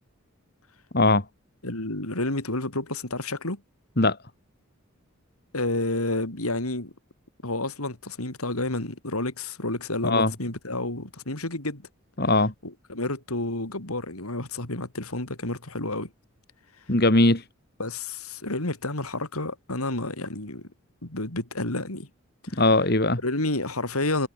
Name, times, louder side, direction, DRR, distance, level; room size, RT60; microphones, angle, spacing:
voice 1, 0.9-1.2 4.0-4.2 10.0-10.3 12.2-12.5 16.9-17.4 22.6-23.2, left 2 dB, 45° left, 2.5 m, -20 dB
voice 2, 1.6-3.6 5.5-6.9 7.4-11.8 12.6-16.1 17.8-20.7 21.0-22.1 22.5-22.6 23.2-24.3, left 2 dB, 85° left, 5.0 m, -30 dB
head